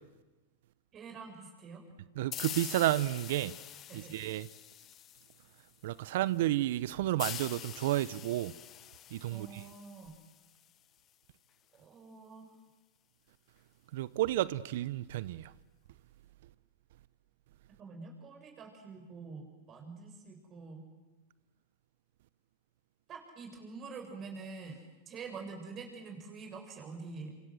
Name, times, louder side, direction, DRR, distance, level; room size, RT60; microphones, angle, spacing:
voice 1, 0.9-1.8 3.9-4.1 9.3-10.1 11.7-12.5 17.8-20.9 23.1-27.3, right 4 dB, 30° right, 7.7 m, -46 dB
voice 2, 2.2-3.5 3.9-4.5 5.8-8.5 9.1-9.6 13.9-15.5, right 15 dB, 65° right, 0.8 m, -31 dB
sound 1, 2.3-5.7 7.2-10.7, left 12 dB, 35° left, 0.9 m, -45 dB
27.0 x 26.0 x 7.9 m
hypercardioid pair, 120°, 0 cm